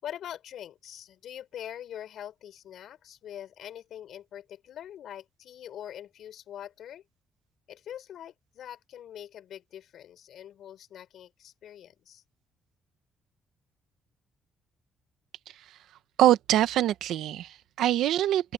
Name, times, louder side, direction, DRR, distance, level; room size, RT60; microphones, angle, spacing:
voice 1, 0.0-7.0 7.7-12.2, left 10 dB, 70° left, 4.2 m, -43 dB
voice 2, 16.2-18.5, right 12 dB, 85° right, 1.4 m, -24 dB
open air
cardioid pair, 90°, 0 cm